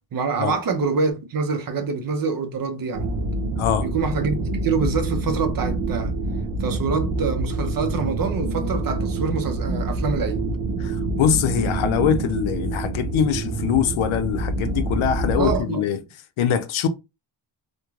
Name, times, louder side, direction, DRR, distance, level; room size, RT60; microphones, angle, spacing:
voice 1, 0.1-3.1 3.8-6.1 6.6-10.4 15.4-15.8, right 4 dB, 45° right, 0.5 m, -25 dB
sound 1, 2.9-15.6, right 2 dB, 80° right, 0.7 m, -26 dB
voice 2, 3.6-3.9 10.8-16.0 16.4-16.9, left 9 dB, 85° left, 0.6 m, -23 dB
3.0 x 2.1 x 2.3 m
wide cardioid pair, 160°, 48 cm